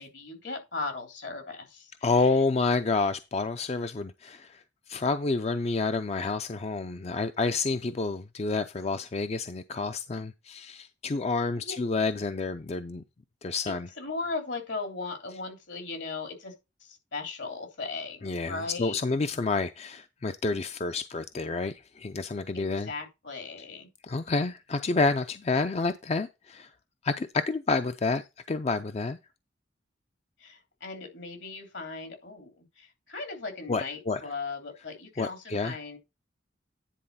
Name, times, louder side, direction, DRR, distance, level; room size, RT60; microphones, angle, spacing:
voice 1, 0.0-2.4 11.5-11.8 13.6-16.5 16.8-19.0 22.5-23.9 30.4-36.0, left 3 dB, 75° left, 3.3 m, -38 dB
voice 2, 2.0-4.6 4.9-13.0 13.4-13.9 18.2-22.9 24.1-26.7 27.0-29.2 33.7-34.2 35.2-35.8, left 3 dB, 35° left, 0.4 m, -29 dB
10.0 x 4.0 x 5.6 m
head